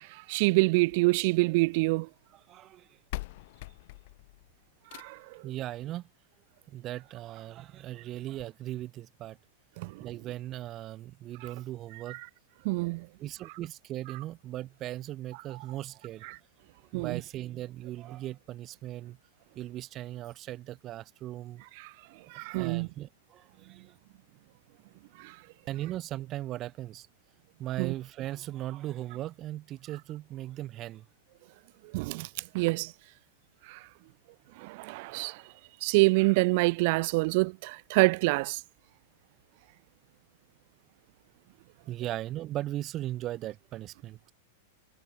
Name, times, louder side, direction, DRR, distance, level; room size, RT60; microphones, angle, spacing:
voice 1, 0.0-2.1 4.9-5.4 9.8-10.1 12.6-13.1 16.9-17.2 21.8-21.9 22.3-22.9 25.2-25.3 27.8-27.9 31.9-32.3 32.5-32.9 33.7-33.8 34.6-35.4 35.8-38.6, right 26 dB, 55° right, 0.6 m, -26 dB
sound 1, 0.7-1.9 2.7-2.8 3.1-5.4 6.7-6.8 7.3-7.4 7.7-7.8 8.3-8.5, left 21 dB, 60° left, 0.9 m, -43 dB
voice 2, 2.3-3.0 5.4-6.1 6.7-9.4 10.0-12.2 13.2-16.3 16.9-19.2 19.5-21.6 22.5-24.0 25.7-27.1 27.6-31.1 41.9-44.3, right 14 dB, 35° right, 4.8 m, -38 dB
hypercardioid pair, 105°, 0 cm